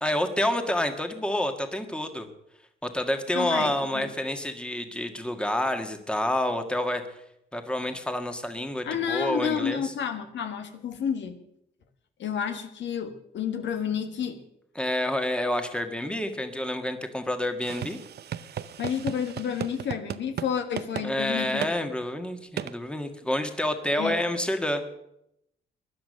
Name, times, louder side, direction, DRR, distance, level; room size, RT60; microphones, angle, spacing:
voice 1, 0.0-2.3 2.8-7.0 7.5-9.9 14.8-18.0 21.0-24.8, left 1 dB, 5° left, 6 dB, 1.7 m, -28 dB
voice 2, 3.3-4.1 8.8-11.4 12.2-14.4 18.8-21.8 24.0-24.2, left 7 dB, 70° left, 7 dB, 1.6 m, -30 dB
sound 1, 17.6-20.5 20.8-21.1 21.6-21.7 22.6-22.7, right 9 dB, 55° right, 0.7 m, -35 dB
16.0 x 10.5 x 6.5 m, 0.80 s
cardioid pair, 90°, 20 cm